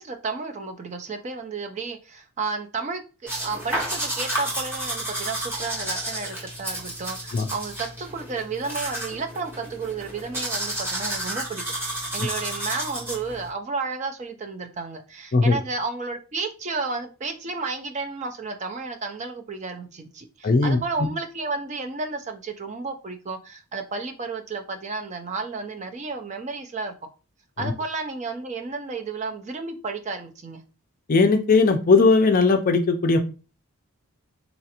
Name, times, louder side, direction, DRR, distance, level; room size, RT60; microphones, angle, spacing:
voice 1, 0.0-11.7 12.1-27.0 27.6-30.6, right 4 dB, 30° right, 0.4 m, -32 dB
sound 1, 3.3-13.5, right 1 dB, 10° right, 0.8 m, -31 dB
voice 2, 20.4-20.8 27.6-27.7 31.1-33.2, left 3 dB, 40° left, 0.4 m, -18 dB
4.0 x 2.4 x 2.8 m
head